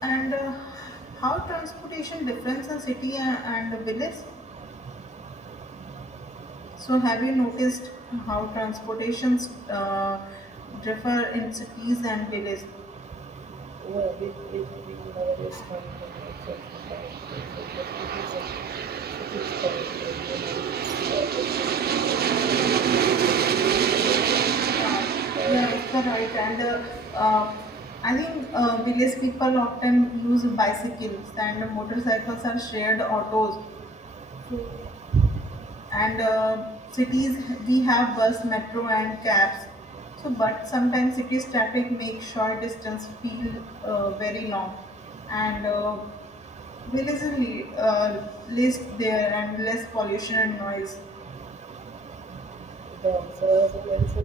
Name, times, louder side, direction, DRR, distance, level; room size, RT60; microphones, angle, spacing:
voice 1, 0.0-4.2 6.8-10.5 10.7-12.6 15.5-15.7 21.0-21.1 22.4-22.5 23.7-23.8 24.4-25.1 25.4-27.6 28.0-33.6 34.5-34.8 35.9-36.7 36.9-39.6 40.2-44.8 45.3-46.1 46.8-51.0, equal, 20° left, 2 dB, 2.6 m, -26 dB
voice 2, 13.9-14.6 15.2-15.3 19.6-19.7 21.1-21.2 25.4-25.6 53.0-54.0, right 4 dB, 35° right, 10 dB, 1.1 m, -25 dB
Aircraft, 15.9-28.7, right 8 dB, 50° right, 0.7 m, -27 dB
27.5 x 15.5 x 2.3 m, 1.1 s
cardioid pair, 90°, 20 cm